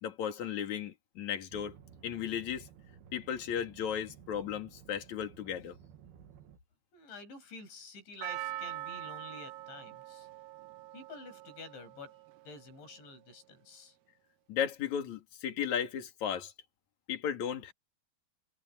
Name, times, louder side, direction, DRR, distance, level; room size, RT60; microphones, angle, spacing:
voice 1, 0.0-1.8 2.0-2.7 3.1-5.8 14.5-16.5 17.1-17.7, left 8 dB, 45° left, 3.3 m, -35 dB
sound 1, 1.5-6.6, right 8 dB, 65° right, 3.4 m, -55 dB
voice 2, 6.9-10.3 10.9-12.2 12.4-14.0, left 4 dB, 80° left, 8.4 m, -49 dB
Percussion, 8.2-12.6 12.8-12.9, right 15 dB, 80° right, 2.3 m, -43 dB
omnidirectional pair, 5.1 m